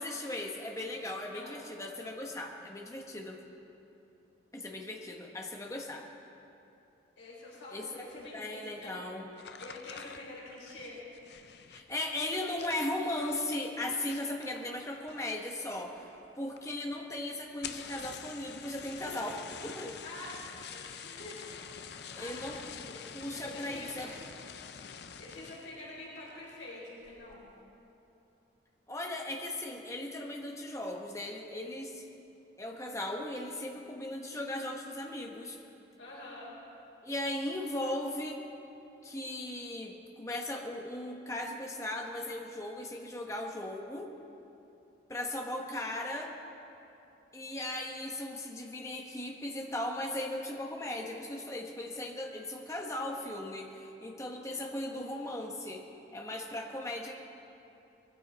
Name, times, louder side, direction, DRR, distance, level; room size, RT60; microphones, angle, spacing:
voice 1, 0.0-3.4 4.5-6.1 7.7-8.1 8.3-9.3 11.7-20.0 22.1-22.6 23.1-24.1 28.9-32.0 32.6-35.6 37.0-38.4 39.0-44.1 45.1-46.3 47.3-55.8 56.1-57.1, left 1 dB, 15° left, 1 dB, 1.3 m, -37 dB
voice 2, 1.2-1.6 7.2-9.0 9.6-11.0 20.0-23.0 23.4-24.1 25.2-27.4 36.0-36.5, left 2 dB, 75° left, -7 dB, 4.7 m, -47 dB
sound 1, 9.3-15.5 15.7-16.3 16.6-16.7 16.9-17.0 17.5-25.8 26.3-26.6 27.0-27.4, left 7 dB, 60° left, 0.6 m, -47 dB
21.5 x 14.5 x 4.3 m, 2.9 s
head